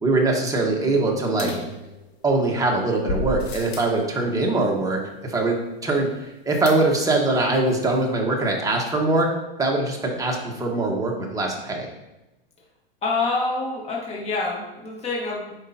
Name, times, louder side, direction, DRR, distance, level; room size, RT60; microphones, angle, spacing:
voice 1, 0.0-1.5 2.2-5.6 5.8-9.3 9.6-11.9, right 2 dB, 10° right, -1 dB, 1.4 m, -22 dB
voice 2, 0.7-1.1 1.4-1.6 13.0-15.5, left 3 dB, 20° left, -2 dB, 1.6 m, -27 dB
sound 1, 1.4-2.4 3.1-4.0 6.7-7.2 7.5-7.6 7.9-8.0, equal, 80° left, 1.7 m, -32 dB
8.1 x 5.2 x 2.9 m, 0.98 s
hypercardioid pair, 110°, 30 cm